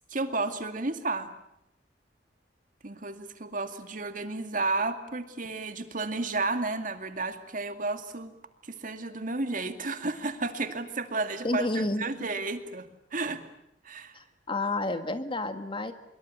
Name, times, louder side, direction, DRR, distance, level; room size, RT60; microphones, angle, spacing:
voice 1, 0.1-1.3 2.8-8.3 8.6-13.4 13.8-14.2, right 3 dB, 45° right, 8 dB, 2.2 m, -32 dB
voice 2, 11.4-12.0 14.1-15.9, left 2 dB, 30° left, 9 dB, 1.8 m, -30 dB
25.0 x 23.0 x 9.9 m, 0.81 s
head